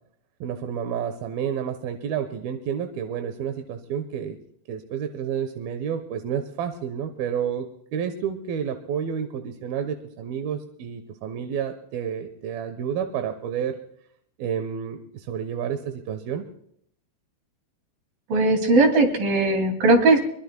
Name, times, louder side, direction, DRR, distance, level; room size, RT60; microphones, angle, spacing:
voice 1, 0.4-4.4 4.7-7.7 7.9-13.8 14.4-16.4, right 8 dB, 70° right, 6 dB, 2.5 m, -30 dB
voice 2, 18.3-20.2, right 2 dB, 55° right, 5 dB, 4.0 m, -18 dB
23.5 x 23.5 x 2.2 m, 0.67 s
omnidirectional pair, 5.1 m